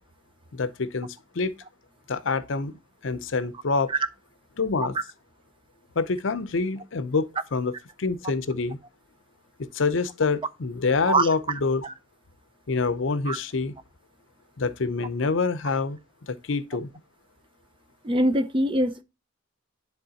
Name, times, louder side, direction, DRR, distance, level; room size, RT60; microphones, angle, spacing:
voice 1, 0.5-1.5 2.1-2.7 3.0-3.9 4.6-5.0 6.0-7.7 8.0-8.8 9.6-11.8 12.7-13.7 14.6-16.0 16.3-16.9, left 4 dB, 65° left, 0.6 m, -26 dB
voice 2, 18.0-19.0, right 1 dB, 25° right, 0.4 m, -23 dB
10.5 x 3.6 x 2.8 m
head